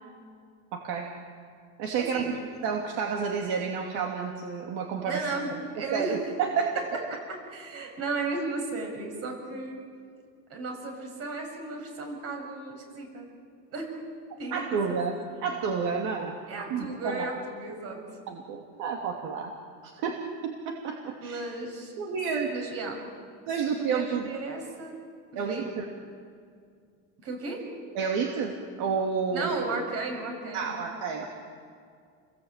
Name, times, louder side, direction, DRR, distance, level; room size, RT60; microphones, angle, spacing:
voice 1, 0.7-1.1 1.8-2.2 2.6-5.3 5.9-6.8 14.5-15.1 15.4-16.3 16.7-17.3 18.3-19.5 19.8-21.4 22.0-22.5 23.5-24.4 25.3-25.8 27.9-29.6 30.5-31.3, right 6 dB, 75° right, 1 dB, 2.8 m, -30 dB
voice 2, 2.0-2.3 5.1-6.2 6.8-6.9 7.5-9.8 10.5-13.3 13.7-14.0 14.4-14.6 15.3-15.5 16.5-18.0 21.2-21.9 22.5-23.0 23.8-25.0 25.3-25.7 27.2-27.7 29.3-30.7, right 3 dB, 50° right, 2 dB, 7.3 m, -35 dB
30.0 x 21.0 x 9.1 m, 2.2 s
cardioid pair, 155°, 30 cm